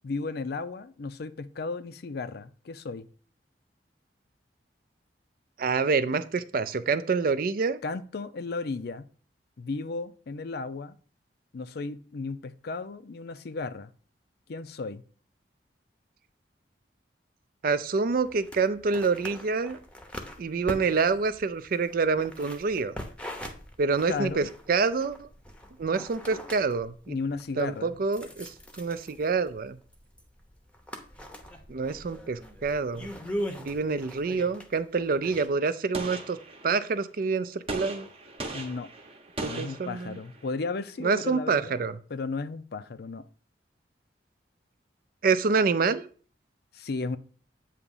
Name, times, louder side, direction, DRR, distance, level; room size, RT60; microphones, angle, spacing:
voice 1, 0.0-3.1 7.8-9.1 9.6-11.0 11.5-13.9 14.5-15.0 24.1-24.5 27.1-28.0 38.5-38.9 39.4-41.8 42.1-43.3 46.7-47.2, left 3 dB, 60° left, 0.5 m, -34 dB
voice 2, 5.6-7.8 17.6-19.8 20.4-22.9 23.8-25.3 25.8-27.1 27.6-28.5 28.8-29.8 31.7-33.1 33.6-36.4 36.6-38.1 39.4-40.2 41.0-42.0 45.2-46.1, right 4 dB, 50° right, 0.4 m, -27 dB
sound 1, 18.1-35.5, equal, 5° left, 0.8 m, -42 dB
Gunshot gunfire, 35.9-37.0 37.7-40.5, right 2 dB, 30° right, 0.9 m, -38 dB
8.3 x 2.9 x 5.4 m
head